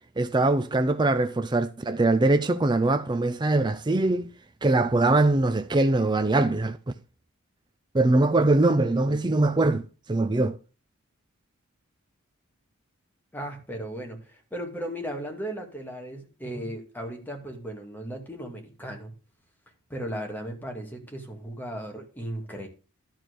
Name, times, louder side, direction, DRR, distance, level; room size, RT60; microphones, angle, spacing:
voice 1, 0.2-4.3 4.6-6.8 7.9-10.6, right 2 dB, 20° right, 0.5 m, -22 dB
voice 2, 13.3-19.1 19.9-22.7, right 1 dB, 10° left, 2.4 m, -36 dB
12.0 x 4.6 x 6.7 m
head